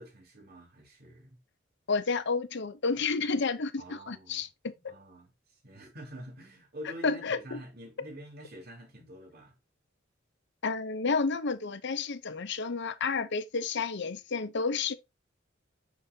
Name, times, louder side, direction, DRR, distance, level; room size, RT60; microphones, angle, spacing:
voice 1, 0.0-1.4 3.8-4.5 4.9-9.6, equal, 55° right, 3.5 m, -47 dB
voice 2, 1.9-4.9 7.0-7.6 10.6-14.9, left 4 dB, 65° left, 0.8 m, -31 dB
7.1 x 6.8 x 2.8 m
head